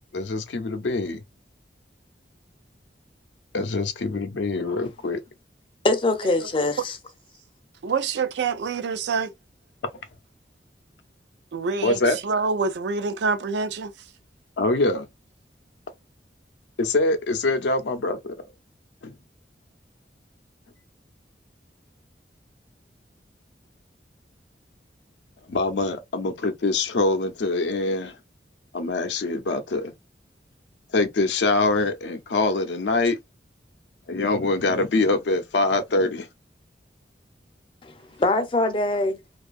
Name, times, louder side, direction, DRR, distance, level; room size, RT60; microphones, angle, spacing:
voice 1, 0.1-1.2 3.5-5.2 11.8-12.2 14.6-15.1 16.8-18.4 19.0-19.1 25.5-28.2 28.7-29.9 30.9-33.2 34.1-36.3, left 2 dB, 85° left, 0.5 m, -24 dB
voice 2, 5.8-7.0 37.8-39.2, left 2 dB, 30° left, 0.4 m, -23 dB
voice 3, 7.8-9.3 11.5-13.9 38.3-38.4 38.8-38.9, right 4 dB, 80° right, 0.4 m, -26 dB
2.6 x 2.3 x 2.3 m
head